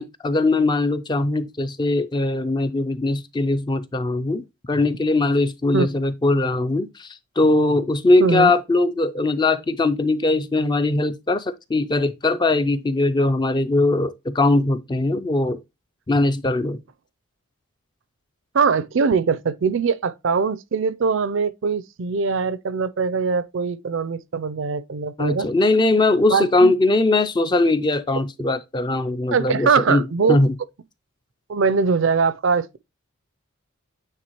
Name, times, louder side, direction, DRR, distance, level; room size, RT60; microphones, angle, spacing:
voice 1, 0.0-15.6 16.1-16.8 25.2-30.5, left 2 dB, 20° left, 0.3 m, -20 dB
voice 2, 8.2-8.5 18.5-25.5 26.3-26.7 29.3-30.4 31.5-32.8, right 5 dB, 55° right, 0.4 m, -22 dB
9.0 x 3.6 x 2.9 m
head